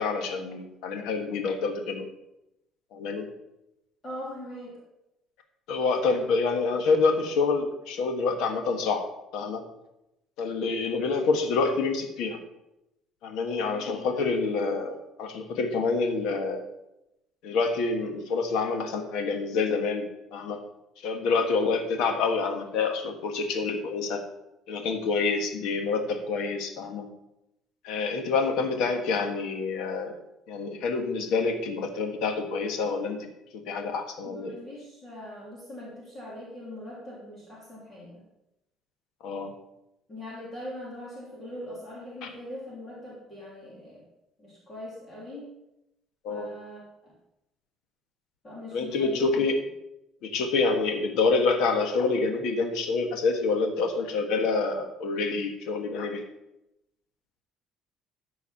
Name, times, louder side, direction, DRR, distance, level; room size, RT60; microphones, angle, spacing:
voice 1, 0.0-2.1 2.9-3.3 5.7-9.0 9.3-9.6 10.4-12.4 13.2-16.6 17.4-20.6 21.0-24.2 24.7-27.1 27.8-30.1 30.5-33.3 33.7-34.6 39.2-39.5 42.2-42.3 46.2-46.5 48.7-49.6 50.2-56.2, left 4 dB, 75° left, 5 dB, 1.5 m, -27 dB
voice 2, 4.0-4.8 13.6-14.0 34.2-38.1 40.1-44.1 44.4-45.5 46.3-47.1 48.4-49.5, left 1 dB, 20° left, -6 dB, 3.0 m, -41 dB
13.0 x 4.8 x 5.6 m, 0.89 s
cardioid pair, 165°, 0 cm